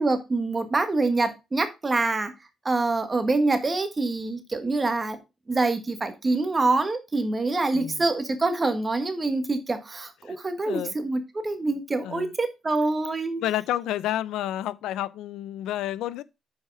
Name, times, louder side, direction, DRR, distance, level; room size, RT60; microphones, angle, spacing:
voice 1, 0.0-2.3 2.6-5.2 5.5-13.4, right 3 dB, 25° right, 1.5 m, -25 dB
voice 2, 7.7-8.0 10.3-10.4 10.7-10.9 12.0-12.3 13.4-16.2, left 13 dB, 85° left, 0.5 m, -30 dB
7.1 x 4.9 x 4.7 m
cardioid pair, 90°, 0 cm